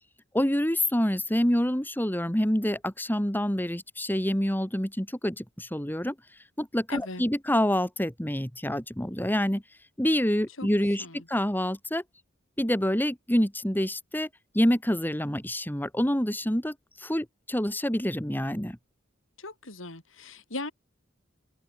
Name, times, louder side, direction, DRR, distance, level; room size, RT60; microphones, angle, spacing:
voice 1, 0.3-6.1 6.6-9.6 10.0-12.0 12.6-14.3 14.5-16.7 17.0-18.8, equal, 10° left, 3.0 m, -27 dB
voice 2, 6.9-7.2 10.6-10.7 11.0-11.2 19.4-20.7, left 2 dB, 90° left, 5.7 m, -38 dB
head